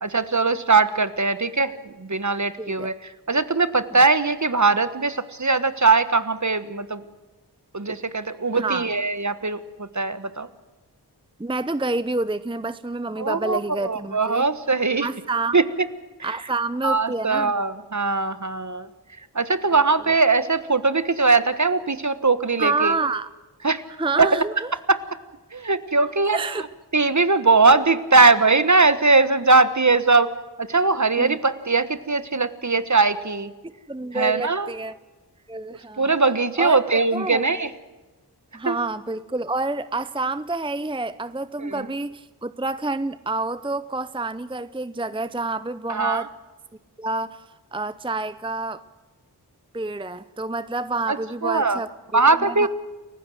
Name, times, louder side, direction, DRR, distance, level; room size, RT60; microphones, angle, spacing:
voice 1, 0.0-7.0 7.7-10.5 13.2-15.1 15.5-15.6 16.2-16.4 16.8-18.9 19.3-22.9 23.6-23.8 24.2-24.4 24.9-25.0 25.5-26.5 26.9-30.3 30.6-33.5 34.1-34.7 36.0-37.7 38.6-38.8 41.6-41.9 45.9-46.2 51.1-51.2 51.4-51.8 52.1-52.7, right 3 dB, 45° right, 13 dB, 1.4 m, -20 dB
voice 2, 2.6-2.9 8.5-8.9 11.4-14.5 15.0-15.6 16.2-17.5 20.1-20.2 22.6-23.3 24.0-24.7 26.3-26.7 31.2-31.4 33.9-35.0 35.5-36.2 36.6-37.4 38.5-46.3 47.0-47.4 47.7-48.8 49.7-52.7, right 3 dB, 10° right, 14 dB, 0.7 m, -28 dB
29.5 x 15.5 x 7.8 m, 1.2 s
wide cardioid pair, 40°, 41 cm